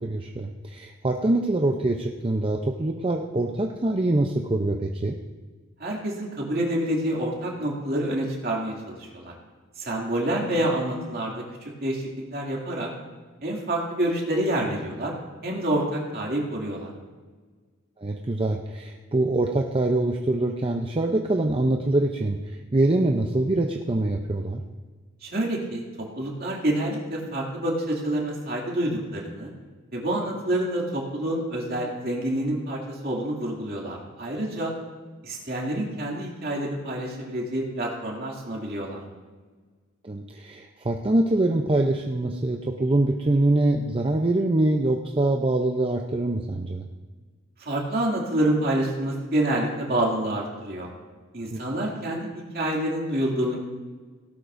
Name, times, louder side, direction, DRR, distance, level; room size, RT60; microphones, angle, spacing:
voice 1, 0.0-5.2 18.0-24.6 40.0-46.8 51.5-51.6, right 2 dB, 25° right, 2 dB, 0.6 m, -24 dB
voice 2, 5.8-9.3 9.8-11.3 11.8-12.0 12.3-12.9 13.4-15.1 15.4-16.9 25.2-25.8 26.2-29.5 29.9-34.7 35.2-39.0 47.6-50.9 51.3-53.6, right 1 dB, 50° right, -2 dB, 2.5 m, -27 dB
17.0 x 12.0 x 2.6 m, 1.4 s
head